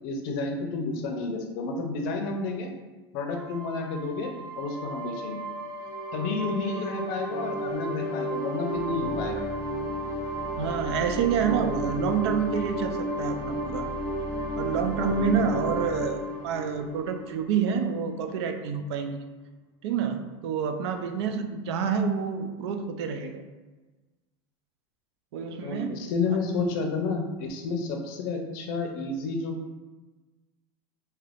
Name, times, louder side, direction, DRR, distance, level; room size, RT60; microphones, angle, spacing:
voice 1, 0.0-2.7 3.1-5.4 6.1-9.4 15.1-15.5 25.6-29.5, left 3 dB, 55° left, 3 dB, 0.5 m, -31 dB
sound 1, 3.3-17.8, right 1 dB, 30° right, 1.1 m, -33 dB
voice 2, 10.6-13.9 14.6-19.3 19.8-23.4 25.3-26.1, right 6 dB, 75° right, 7 dB, 0.4 m, -28 dB
2.7 x 2.5 x 3.3 m, 1.2 s
supercardioid pair, 165°, 14 cm